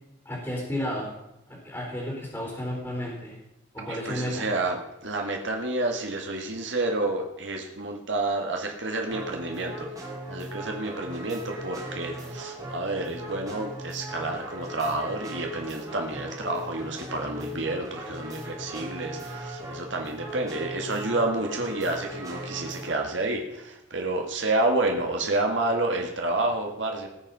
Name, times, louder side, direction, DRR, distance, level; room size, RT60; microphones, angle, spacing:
voice 1, 0.3-1.1 1.6-3.4 3.7-4.5, left 1 dB, 15° left, -4 dB, 4.0 m, -32 dB
voice 2, 3.8-9.9 10.3-27.1, right 2 dB, 80° right, 2 dB, 1.9 m, -29 dB
sound 1, 9.1-23.1, right 1 dB, 20° right, 2.9 m, -39 dB
19.5 x 6.7 x 5.5 m, 0.90 s
head